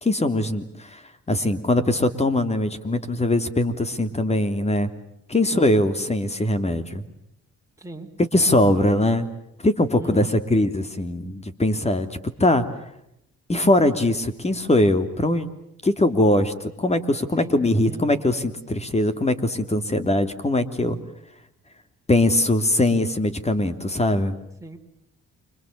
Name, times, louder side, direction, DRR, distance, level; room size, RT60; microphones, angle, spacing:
voice 1, 0.0-1.0 1.3-4.9 5.3-7.0 8.2-9.3 9.6-12.1 12.4-12.6 13.5-15.5 15.8-21.0 22.1-24.4, left 1 dB, 20° left, 10 dB, 3.2 m, -21 dB
voice 2, 7.8-8.1 9.9-10.3 17.3-17.6 17.9-18.1 24.6-24.8, right 2 dB, 10° right, 2 dB, 4.8 m, -36 dB
30.0 x 26.0 x 6.9 m, 0.78 s
cardioid pair, 90°, 30 cm